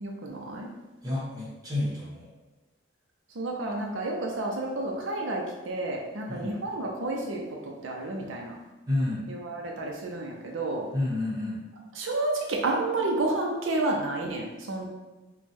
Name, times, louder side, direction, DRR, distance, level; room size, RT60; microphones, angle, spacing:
voice 1, 0.0-0.7 3.4-7.4 7.8-8.5 9.3-10.8 11.9-14.9, right 2 dB, 80° right, 0 dB, 0.6 m, -30 dB
voice 2, 1.0-2.3 6.3-6.6 8.2-8.3 8.9-9.2 10.9-11.6, left 2 dB, 20° right, -7 dB, 1.1 m, -30 dB
5.2 x 2.3 x 3.4 m, 1.1 s
head